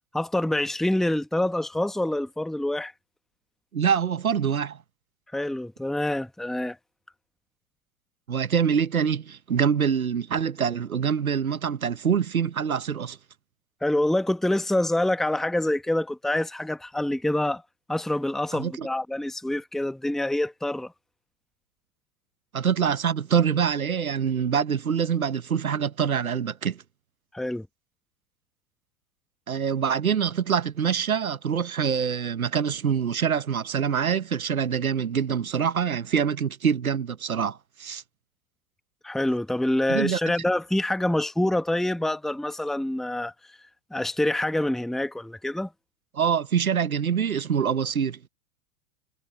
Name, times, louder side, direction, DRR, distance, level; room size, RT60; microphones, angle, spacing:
voice 1, 0.1-2.9 5.3-6.8 13.8-17.6 17.9-20.9 27.3-27.7 39.0-43.6 43.9-45.7, left 1 dB, ahead, 1.1 m, -26 dB
voice 2, 3.7-4.8 8.3-13.2 18.5-18.9 22.5-26.8 29.5-38.0 39.9-40.2 46.1-48.2, right 7 dB, 90° right, 1.2 m, -25 dB
hypercardioid pair, 100°, 41 cm